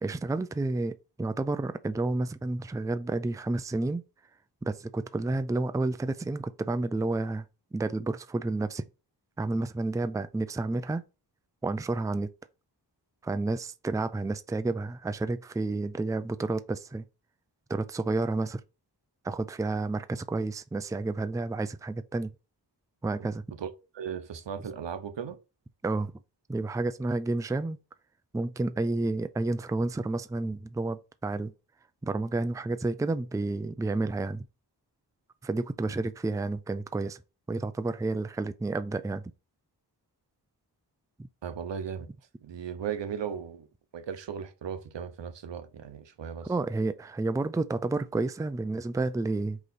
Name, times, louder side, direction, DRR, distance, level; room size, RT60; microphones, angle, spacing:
voice 1, 0.0-4.0 4.6-7.4 7.7-8.8 9.4-11.0 11.6-12.3 13.2-17.0 17.7-18.6 19.2-22.3 23.0-23.4 25.8-26.1 26.5-27.8 28.3-31.5 32.0-34.5 35.4-37.2 37.5-39.2 41.2-41.3 46.5-49.6, right 2 dB, 10° right, 0.4 m, -30 dB
voice 2, 23.9-25.4 41.4-42.1 42.4-43.7 43.9-46.5, right 7 dB, 90° right, 1.0 m, -36 dB
5.1 x 4.9 x 4.1 m
wide cardioid pair, 110°, 42 cm